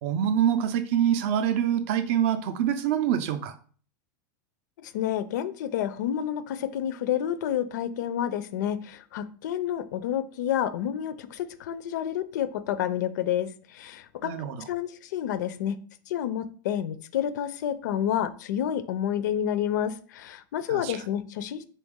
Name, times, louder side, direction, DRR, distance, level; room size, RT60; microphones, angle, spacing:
voice 1, 0.0-3.5 14.2-14.7 20.7-21.0, right 9 dB, 35° right, 10 dB, 0.4 m, -25 dB
voice 2, 4.8-14.3 14.7-15.8 16.1-21.6, left 10 dB, 60° left, 13 dB, 0.4 m, -29 dB
4.0 x 3.4 x 3.6 m, 0.43 s
supercardioid pair, 180°, 11 cm